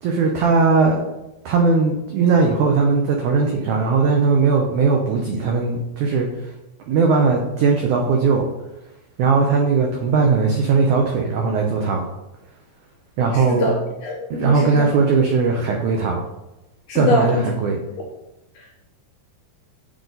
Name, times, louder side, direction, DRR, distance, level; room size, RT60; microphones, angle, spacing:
voice 1, 0.0-1.0 1.5-6.3 6.9-8.5 9.2-12.0 13.2-13.7 14.3-16.2 17.0-17.8, right 4 dB, 90° right, 1 dB, 1.7 m, -18 dB
voice 2, 13.3-13.7 14.0-14.9 16.9-17.4 18.6-18.9, left 2 dB, 75° left, -2 dB, 1.8 m, -24 dB
9.4 x 3.9 x 4.0 m, 0.95 s
omnidirectional pair, 4.5 m